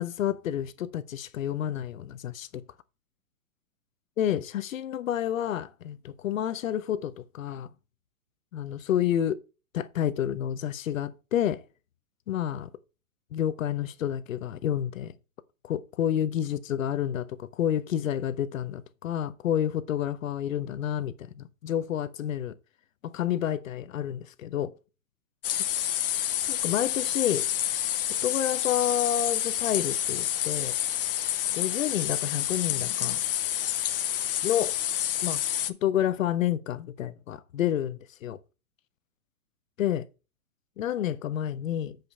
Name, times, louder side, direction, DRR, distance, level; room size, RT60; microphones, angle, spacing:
voice 1, 0.0-2.6 4.2-7.7 8.5-9.3 9.7-11.6 12.3-12.7 13.3-15.1 15.6-22.5 23.0-24.7 26.5-27.5 28.2-30.7 31.5-33.2 34.4-34.7 35.2-35.4 35.7-38.4 39.8-40.0 40.8-42.0, left 10 dB, 65° left, 1.0 m, -29 dB
sound 1, 25.4-35.7, left 12 dB, 40° left, 0.7 m, -28 dB
7.8 x 5.3 x 4.2 m
hypercardioid pair, 165°, 43 cm